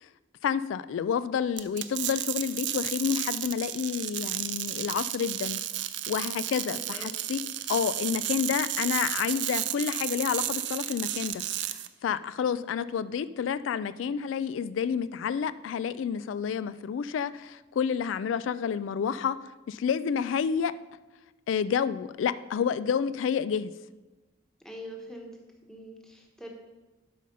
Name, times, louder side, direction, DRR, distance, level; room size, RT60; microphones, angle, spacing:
voice 1, 0.4-5.6 6.1-7.4 7.7-20.7 21.5-23.7, left 7 dB, 85° left, 15 dB, 0.3 m, -29 dB
sound 1, 1.6-11.9, right 13 dB, 65° right, 0.5 m, -33 dB
voice 2, 6.5-7.1 12.4-12.7 24.6-25.3 25.7-26.5, equal, 5° left, 0 dB, 1.2 m, -44 dB
11.5 x 5.0 x 5.4 m, 1.2 s
head